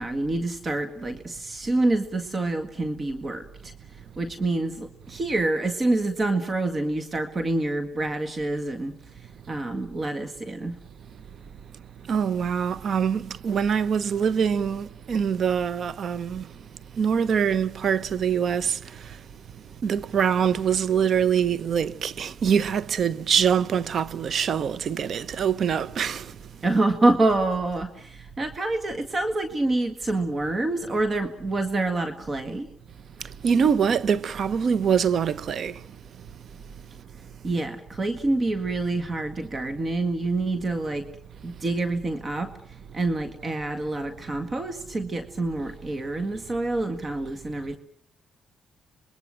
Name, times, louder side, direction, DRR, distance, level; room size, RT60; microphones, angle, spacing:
voice 1, 0.0-10.8 26.6-32.7 37.4-41.1 41.4-42.5 42.9-47.8, right 2 dB, 35° right, 1.8 m, -27 dB
voice 2, 12.1-16.5 16.9-19.2 19.8-26.4 33.2-35.9, right 7 dB, 55° right, 1.0 m, -24 dB
26.5 x 22.0 x 7.6 m
cardioid pair, 90°, 0 cm